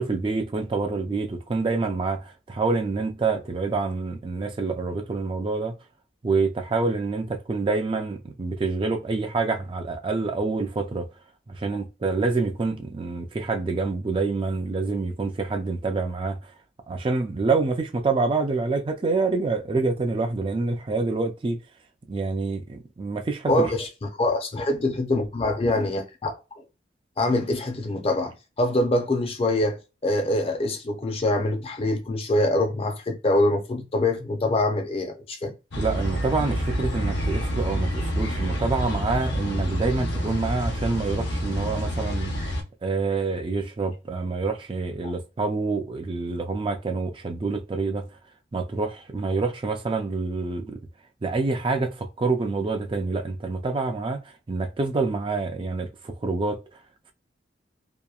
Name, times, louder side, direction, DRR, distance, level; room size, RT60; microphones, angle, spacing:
voice 1, 0.0-5.7 6.2-11.1 11.5-16.5 16.9-21.6 22.1-23.7 35.8-42.4 42.8-48.1 48.5-50.8 51.2-56.6, right 3 dB, 30° right, 0.3 m, -27 dB
voice 2, 23.5-26.4 27.2-35.5 45.0-45.1, left 1 dB, 35° left, 0.5 m, -24 dB
sound 1, 35.7-42.6, equal, 75° left, 0.9 m, -28 dB
2.8 x 2.1 x 2.3 m
head